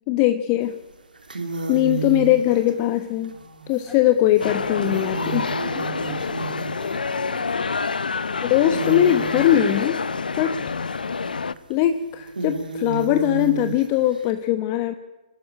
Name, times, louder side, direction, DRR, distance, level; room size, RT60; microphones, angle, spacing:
voice 1, 0.1-0.8 1.7-3.3 3.7-5.6 8.4-10.0 10.4-10.8 11.7-14.9, left 12 dB, 30° left, 9 dB, 1.0 m, -20 dB
sound 1, 0.7-0.8 1.1-8.1 8.5-14.3, right 5 dB, 85° right, 2.9 m, -33 dB
voice 2, 3.7-4.0 5.7-7.5, right 1 dB, ahead, -1 dB, 4.0 m, -42 dB
sound 2, 4.4-11.5, left 5 dB, 80° left, 0.8 m, -27 dB
24.0 x 13.5 x 9.9 m, 1.1 s
hypercardioid pair, 140°, 5 cm